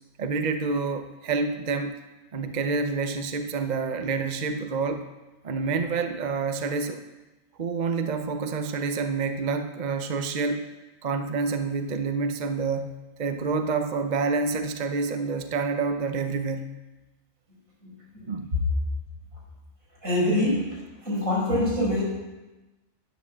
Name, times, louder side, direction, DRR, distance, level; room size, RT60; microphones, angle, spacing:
voice 1, 0.2-1.9 2.3-5.1 5.4-7.0 7.6-10.7 11.0-16.7 18.3-18.5, right 4 dB, 40° right, 7 dB, 0.8 m, -28 dB
voice 2, 20.0-22.0, left 1 dB, 80° right, -4 dB, 5.9 m, -25 dB
11.0 x 10.0 x 7.3 m, 1.1 s
omnidirectional pair, 1.4 m